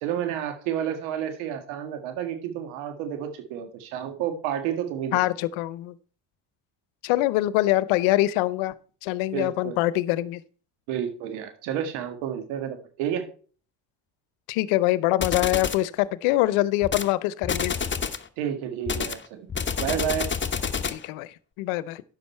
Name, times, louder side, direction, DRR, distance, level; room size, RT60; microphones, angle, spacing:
voice 1, 0.0-5.2 9.3-9.8 10.9-13.2 18.4-19.5 19.8-20.3, right 9 dB, 85° right, 1.9 m, -30 dB
voice 2, 5.1-5.9 7.0-8.7 9.0-10.4 14.5-17.8 20.8-22.0, left 16 dB, 80° left, 0.8 m, -24 dB
sound 1, 15.2-15.9 16.8-17.1 17.4-18.3 18.9-21.1, left 6 dB, 25° left, 1.0 m, -28 dB
10.5 x 7.2 x 4.4 m
supercardioid pair, 65°, 48 cm